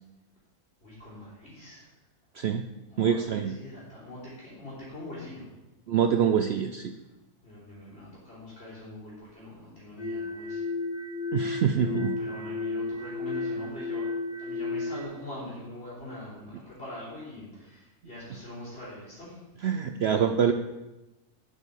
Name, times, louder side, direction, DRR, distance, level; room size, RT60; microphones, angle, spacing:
voice 1, 0.8-1.9 2.9-5.5 7.4-10.7 11.7-14.1 14.4-19.4, left 1 dB, 45° left, -12 dB, 4.4 m, -43 dB
voice 2, 3.0-3.5 5.9-6.9 11.3-12.2 19.6-20.5, right 7 dB, 65° right, 7 dB, 0.6 m, -25 dB
sound 1, 10.0-15.0, left 3 dB, 25° left, 3.8 m, -33 dB
8.3 x 6.7 x 7.3 m, 1.0 s
omnidirectional pair, 1.6 m